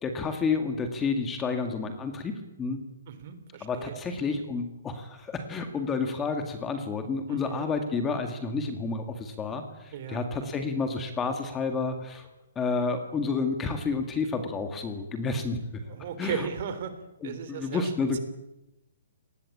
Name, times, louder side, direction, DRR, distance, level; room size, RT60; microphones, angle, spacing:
voice 1, 0.0-2.8 3.6-12.3 12.6-15.6 16.2-16.5 17.2-18.2, left 4 dB, 10° left, 6 dB, 1.9 m, -30 dB
voice 2, 3.1-4.0 7.3-7.8 9.9-10.5 15.8-16.9 17.2-17.9, right 8 dB, 40° right, 11 dB, 3.3 m, -37 dB
26.0 x 19.5 x 8.6 m, 0.92 s
hypercardioid pair, 170°, 0 cm